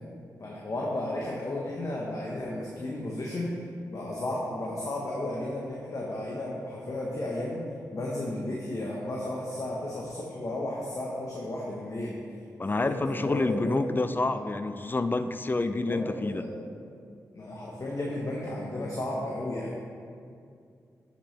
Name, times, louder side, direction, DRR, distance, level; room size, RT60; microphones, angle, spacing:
voice 1, 0.4-3.5 3.9-7.6 7.9-12.1 12.7-13.7 14.3-14.4 15.6-16.6 17.3-19.8, left 1 dB, 55° left, -3 dB, 1.1 m, -34 dB
voice 2, 12.6-16.4, left 2 dB, 30° left, 10 dB, 0.4 m, -28 dB
8.2 x 6.1 x 3.3 m, 2.4 s
cardioid pair, 45°, 7 cm